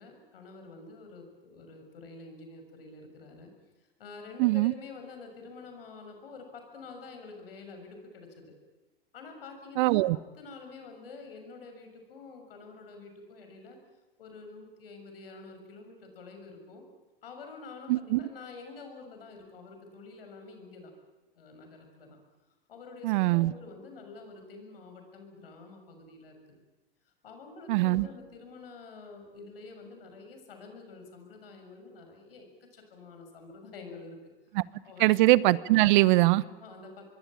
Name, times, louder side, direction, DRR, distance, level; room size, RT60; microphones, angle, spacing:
voice 1, 0.0-3.5 3.8-8.5 9.1-10.0 10.4-13.8 14.2-16.8 17.2-20.9 21.3-22.2 22.7-26.6 27.2-34.2 34.8-35.2 35.8-35.9 36.6-37.1, left 4 dB, 75° left, 5 dB, 6.7 m, -48 dB
voice 2, 4.4-4.7 9.8-10.2 17.9-18.2 23.0-23.5 27.7-28.1 34.6-34.7 35.0-36.4, right 19 dB, 55° right, 20 dB, 0.9 m, -22 dB
25.5 x 22.5 x 8.9 m, 1.1 s
hypercardioid pair, 95°, 29 cm